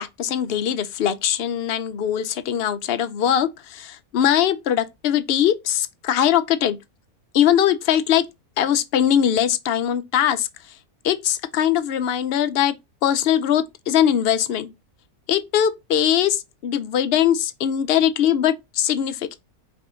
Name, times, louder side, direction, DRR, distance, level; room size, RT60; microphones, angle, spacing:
voice 1, 0.0-6.8 7.3-8.2 8.6-10.5 11.0-12.7 13.0-14.7 15.3-19.4, left 10 dB, 60° left, 0.7 m, -21 dB
4.9 x 2.7 x 3.6 m
omnidirectional pair, 1.5 m